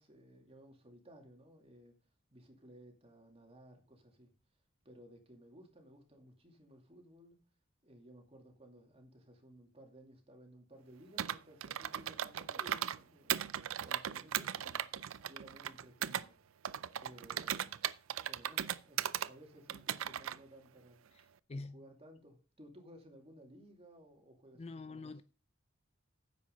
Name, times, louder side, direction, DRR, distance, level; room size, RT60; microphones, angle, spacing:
voice 1, 0.0-1.9 2.3-4.3 4.8-7.4 7.8-13.4 13.8-14.9 15.3-16.4 17.0-17.8 18.3-21.0 21.5-25.2, right 1 dB, 30° right, 2.6 m, -58 dB
Computer keyboard, 11.2-13.0 13.3-16.2 16.6-19.3 19.7-20.4, right 10 dB, 70° right, 0.4 m, -37 dB
voice 2, 24.5-25.2, left 3 dB, 30° left, 0.4 m, -44 dB
9.7 x 7.9 x 5.2 m
head